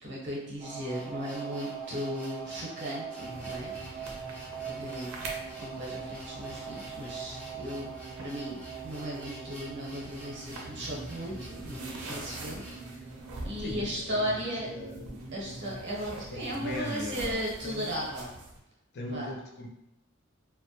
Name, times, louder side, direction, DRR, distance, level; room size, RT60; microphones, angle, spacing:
voice 1, 0.0-4.2 4.6-5.1 5.6-7.9 8.2-8.6 8.8-13.0 13.4-14.7 15.3-18.3 19.1-19.3, equal, 55° right, -3 dB, 0.8 m, -36 dB
sound 1, 0.6-15.8, right 6 dB, 30° right, 0.5 m, -43 dB
sound 2, 0.8-12.9, right 1 dB, 5° left, 0.7 m, -51 dB
sound 3, 3.2-18.6, right 2 dB, 90° right, 0.5 m, -45 dB
voice 2, 13.6-15.3 16.3-18.1 18.9-19.7, left 1 dB, 50° left, -2 dB, 0.4 m, -39 dB
2.1 x 2.1 x 2.8 m, 0.86 s
head